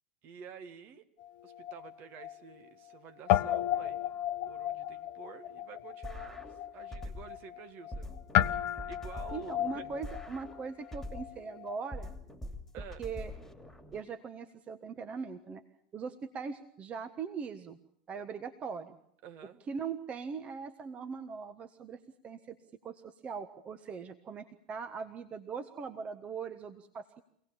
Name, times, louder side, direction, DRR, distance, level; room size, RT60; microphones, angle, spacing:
voice 1, 0.2-1.1 1.4-4.1 4.4-8.2 8.8-9.9 12.7-13.1 19.2-19.6, right 7 dB, 45° right, 9 dB, 1.9 m, -50 dB
Guitar, 1.2-3.0 3.3-11.9, left 12 dB, 50° left, 1.0 m, -34 dB
sound 1, 6.0-7.4 7.9-11.4 11.9-14.0, left 1 dB, 5° left, 2.7 m, -44 dB
voice 2, 9.3-12.1 13.0-13.3 13.9-15.6 15.9-17.8 18.1-19.0 19.7-22.6 22.8-27.2, right 5 dB, 30° right, 9 dB, 1.4 m, -40 dB
25.5 x 18.5 x 7.2 m, 0.71 s
figure-of-eight pair, 85°, 4 cm